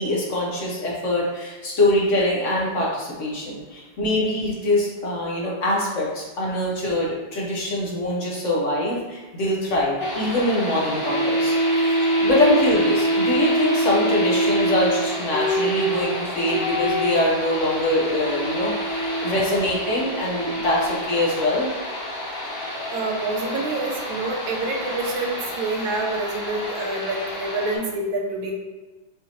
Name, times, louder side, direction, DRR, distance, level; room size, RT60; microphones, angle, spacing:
voice 1, 0.0-11.6 12.2-21.7, left 1 dB, 60° left, -4 dB, 0.8 m, -23 dB
sound 1, 10.0-27.8, right 1 dB, 30° left, 1.5 m, -26 dB
voice 2, 22.9-28.5, right 2 dB, 80° right, 1 dB, 1.4 m, -27 dB
5.6 x 3.1 x 2.7 m, 1.2 s
omnidirectional pair, 2.2 m